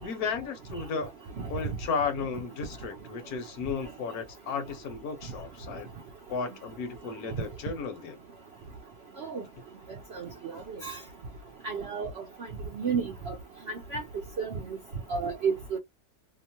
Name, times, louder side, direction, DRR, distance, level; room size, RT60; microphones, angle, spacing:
voice 1, 0.0-1.1 1.5-5.9 6.3-8.2, left 5 dB, 70° left, 1.2 m, -34 dB
voice 2, 11.6-12.1 12.8-13.3 13.9-14.0 14.4-14.5 15.1-15.8, right 5 dB, 65° right, 0.6 m, -30 dB
2.9 x 2.1 x 2.8 m
omnidirectional pair, 1.6 m